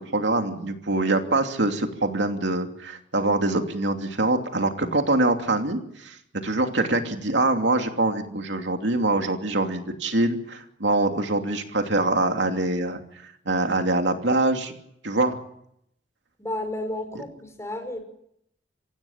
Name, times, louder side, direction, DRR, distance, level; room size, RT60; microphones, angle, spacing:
voice 1, 0.0-6.2 6.4-14.7 15.0-15.4, right 2 dB, 75° right, 4 dB, 2.9 m, -24 dB
voice 2, 16.4-18.0, left 1 dB, 15° left, 7 dB, 4.9 m, -32 dB
25.5 x 17.0 x 8.7 m, 0.74 s
head